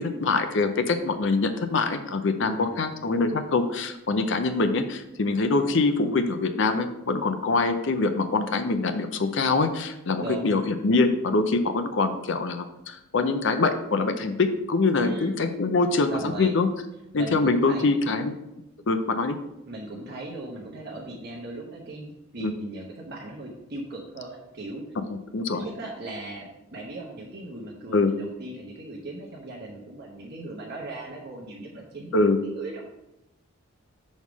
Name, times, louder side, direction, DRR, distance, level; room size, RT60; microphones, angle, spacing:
voice 1, 0.0-16.7 17.1-18.4 18.9-19.4 22.4-22.5 25.3-25.6 27.9-28.1 32.1-32.4, left 3 dB, 55° left, 8 dB, 0.6 m, -24 dB
voice 2, 2.4-2.9 10.1-10.7 14.9-15.3 16.1-16.6 17.1-17.9 19.7-24.8 25.5-32.2 32.4-32.8, right 2 dB, 50° right, -2 dB, 1.0 m, -38 dB
6.3 x 3.6 x 6.1 m, 0.89 s
head